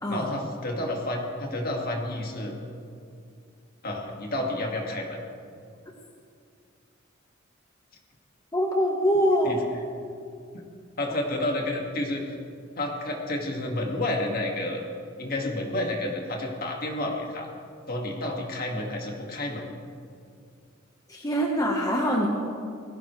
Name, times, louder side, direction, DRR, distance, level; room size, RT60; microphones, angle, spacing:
voice 1, 0.1-2.6 3.8-5.2 9.4-9.6 10.5-10.7 11.0-12.2 12.8-14.8 15.2-17.5 17.9-19.6, left 1 dB, 50° left, 0 dB, 2.1 m, -30 dB
voice 2, 8.5-9.6 21.1-22.3, equal, 20° left, -1 dB, 1.3 m, -24 dB
19.5 x 16.0 x 3.3 m, 2.3 s
head